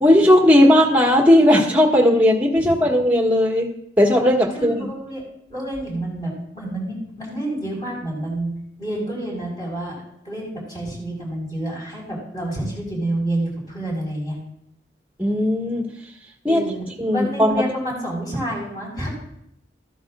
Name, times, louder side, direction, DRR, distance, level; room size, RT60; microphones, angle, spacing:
voice 1, 0.0-3.7 4.0-4.9 15.2-15.9 16.4-16.6 17.0-17.6, left 1 dB, 10° right, -2 dB, 1.7 m, -16 dB
voice 2, 4.5-5.2 5.5-8.5 8.8-14.3 16.5-19.1, right 1 dB, 20° left, -4 dB, 4.8 m, -28 dB
14.0 x 14.0 x 2.5 m, 0.74 s
head